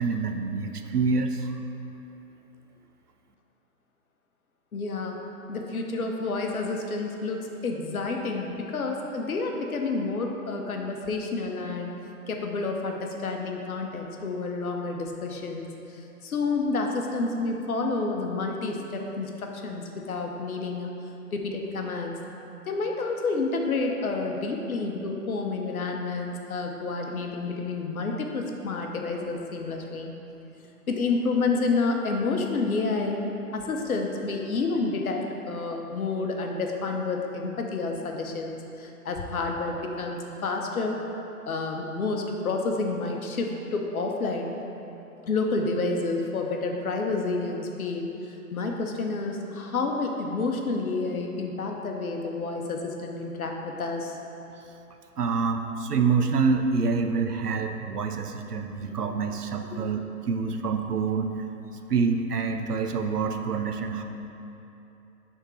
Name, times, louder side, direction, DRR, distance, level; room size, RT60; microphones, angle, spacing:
voice 1, 0.0-1.5 55.2-61.3 61.9-64.0, right 5 dB, 85° right, 6 dB, 0.6 m, -26 dB
voice 2, 4.7-5.2 5.5-12.0 12.3-20.9 21.3-22.2 22.7-30.1 30.9-33.2 33.5-41.0 41.5-44.5 45.3-54.2, left 3 dB, 65° left, 2 dB, 0.9 m, -29 dB
6.6 x 3.6 x 4.6 m, 2.9 s
figure-of-eight pair, 125°, 46 cm